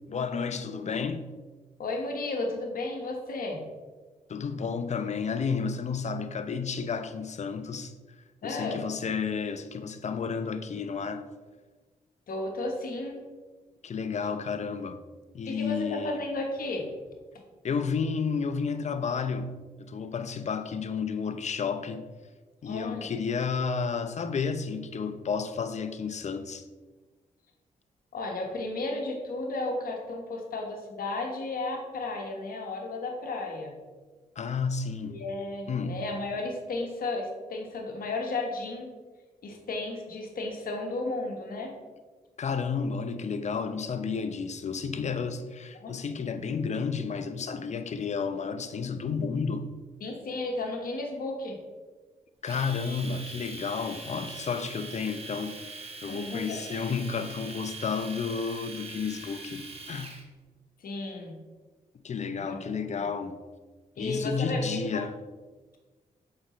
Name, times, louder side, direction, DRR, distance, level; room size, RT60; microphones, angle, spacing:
voice 1, 0.1-1.3 4.3-7.9 8.4-11.3 13.8-15.0 15.3-16.2 17.6-22.0 22.6-26.6 34.4-35.2 35.7-36.0 42.4-49.7 52.4-60.2 62.0-63.4 64.0-65.1, left 5 dB, 50° left, 0.6 m, -31 dB
voice 2, 1.8-3.6 8.4-8.9 12.3-13.2 15.5-16.9 22.6-23.1 28.1-33.8 35.1-38.9 39.4-41.7 45.7-45.9 50.0-51.6 56.1-56.6 60.8-61.4 62.4-62.6 62.9-63.1 64.0-64.6 64.9-65.0, left 2 dB, 70° left, 1.2 m, -33 dB
Domestic sounds home sounds, 52.5-60.2, right 3 dB, 40° right, 1.2 m, -42 dB
6.4 x 5.1 x 3.0 m
cardioid pair, 55°, 15 cm